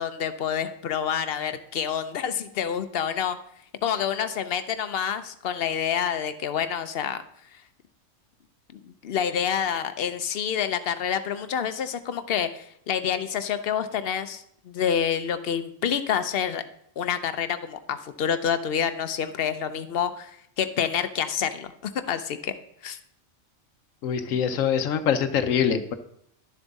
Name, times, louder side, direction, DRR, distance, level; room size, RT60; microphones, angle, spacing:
voice 1, 0.0-3.4 3.8-7.2 8.7-16.6 17.0-20.3 20.6-22.5 22.8-23.0, left 8 dB, 55° left, 10 dB, 0.8 m, -28 dB
voice 2, 24.0-26.0, left 8 dB, 80° left, 10 dB, 1.1 m, -24 dB
11.5 x 7.1 x 4.0 m, 0.70 s
omnidirectional pair, 1.4 m